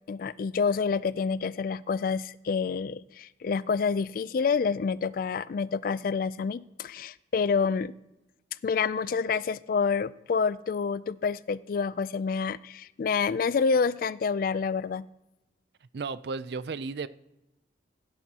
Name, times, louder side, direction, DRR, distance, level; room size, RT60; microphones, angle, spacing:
voice 1, 0.1-7.9 8.6-15.1, left 5 dB, 50° left, 18 dB, 0.3 m, -28 dB
voice 2, 15.9-17.1, right 4 dB, 60° right, 16 dB, 0.4 m, -34 dB
16.5 x 10.5 x 2.9 m, 0.96 s
head